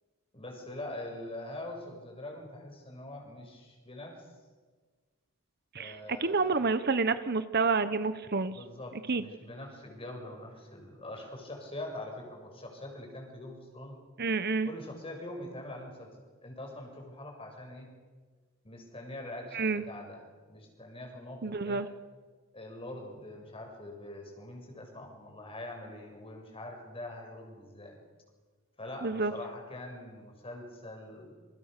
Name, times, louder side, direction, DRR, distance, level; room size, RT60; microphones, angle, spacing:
voice 1, 0.3-4.2 5.8-6.6 8.5-14.0 14.6-16.1 16.4-17.9 18.6-21.8 22.5-28.0 28.8-31.3, left 1 dB, 25° left, 2 dB, 6.8 m, -43 dB
voice 2, 5.7-8.6 9.1-9.2 14.2-14.7 19.5-19.8 21.4-21.9 29.0-29.3, right 4 dB, 45° right, 12 dB, 1.1 m, -29 dB
29.0 x 28.0 x 6.8 m, 1.4 s
head